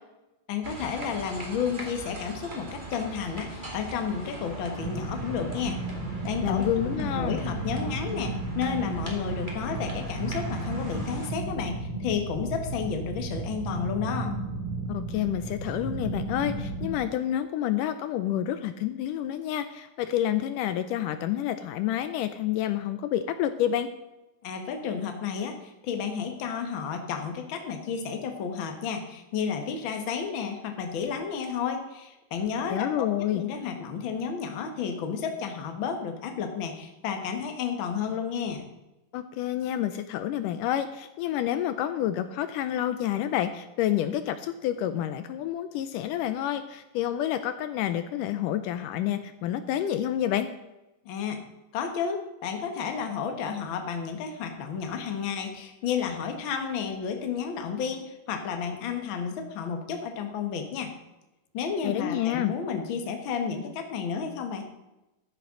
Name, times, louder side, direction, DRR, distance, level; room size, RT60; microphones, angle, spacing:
voice 1, 0.5-5.8 6.2-6.6 6.9-14.4 24.4-33.1 33.3-38.6 51.0-51.4 51.7-60.9 61.5-64.7, left 6 dB, 50° left, 5 dB, 1.7 m, -32 dB
sound 1, 0.6-11.3, right 1 dB, 20° right, 1.7 m, -40 dB
sound 2, 4.8-16.9, right 2 dB, 50° right, 3.8 m, -34 dB
voice 2, 6.4-7.4 14.9-23.9 32.7-33.4 39.1-50.5 61.8-62.5, left 11 dB, 80° left, 10 dB, 2.1 m, -29 dB
13.5 x 10.5 x 3.8 m, 0.98 s
omnidirectional pair, 3.9 m